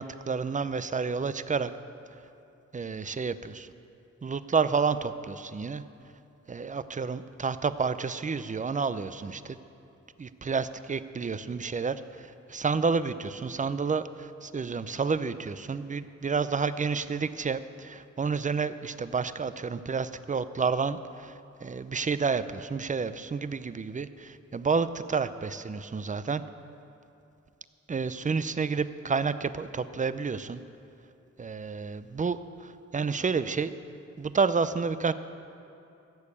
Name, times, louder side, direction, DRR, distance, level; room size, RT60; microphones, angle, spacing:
voice 1, 0.0-1.7 2.7-3.7 4.2-5.8 6.5-9.6 10.2-21.3 21.6-26.4 27.9-30.6 31.4-33.7 34.2-35.1, right 5 dB, 25° right, 13 dB, 0.5 m, -30 dB
15.5 x 6.7 x 8.4 m, 2.7 s
cardioid pair, 70°, 29 cm